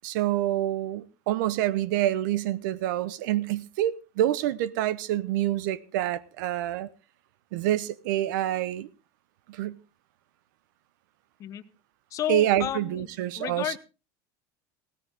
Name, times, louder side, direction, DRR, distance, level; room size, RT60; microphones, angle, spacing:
voice 1, 0.0-6.9 7.5-8.9 9.5-9.8 12.3-13.8, right 13 dB, 85° right, 0.9 m, -27 dB
voice 2, 12.1-13.1 13.4-13.8, left 12 dB, 35° left, 1.0 m, -31 dB
16.5 x 14.0 x 3.6 m
cardioid pair, 160°, 10 cm